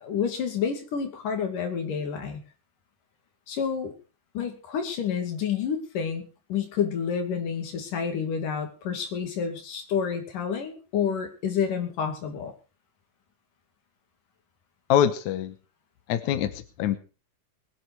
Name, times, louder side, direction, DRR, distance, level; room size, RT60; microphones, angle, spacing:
voice 1, 0.0-2.4 3.5-3.9 4.3-12.5, left 7 dB, 85° left, 5 dB, 4.2 m, -29 dB
voice 2, 14.9-15.5 16.1-17.0, left 10 dB, 70° left, 10 dB, 2.3 m, -24 dB
21.0 x 9.8 x 4.7 m, 0.35 s
omnidirectional pair, 3.6 m